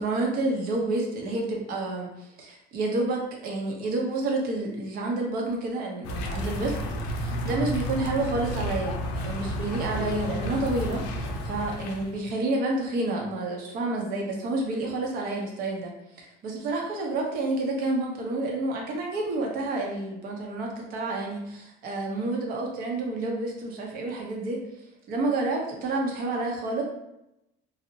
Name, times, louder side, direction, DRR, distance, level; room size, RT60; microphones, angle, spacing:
voice 1, 0.0-6.8 7.1-8.9 9.2-15.9 16.2-24.6 25.1-26.8, right 2 dB, 55° right, 0 dB, 0.7 m, -29 dB
sound 1, 6.0-12.2, equal, 90° left, 0.4 m, -31 dB
2.7 x 2.0 x 2.7 m, 0.85 s
cardioid pair, 140°, 17 cm